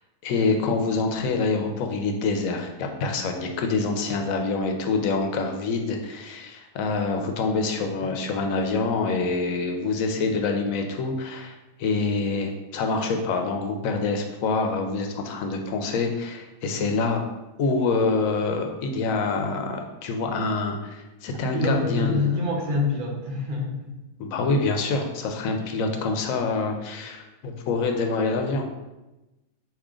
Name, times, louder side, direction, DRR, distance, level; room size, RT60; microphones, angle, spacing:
voice 1, 0.2-17.2 17.6-22.3 24.2-28.7, left 3 dB, 85° left, 4 dB, 1.0 m, -26 dB
voice 2, 21.5-24.0, left 3 dB, 45° right, 0 dB, 0.8 m, -26 dB
4.9 x 2.8 x 3.6 m, 1.0 s
omnidirectional pair, 1.4 m